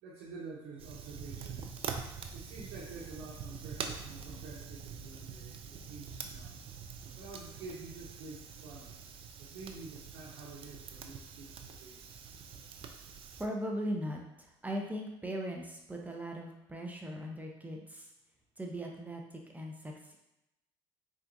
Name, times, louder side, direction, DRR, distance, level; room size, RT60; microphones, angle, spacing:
voice 1, 0.0-1.7 2.3-6.5 7.1-8.9 9.4-12.0, right 4 dB, 80° right, -6 dB, 1.0 m, -48 dB
Fire, 0.8-13.5, right 6 dB, 50° right, 0.5 m, -45 dB
voice 2, 13.4-18.1 18.6-20.2, equal, 15° right, 1 dB, 0.8 m, -39 dB
4.3 x 3.6 x 2.6 m, 0.88 s
supercardioid pair, 70°, 12 cm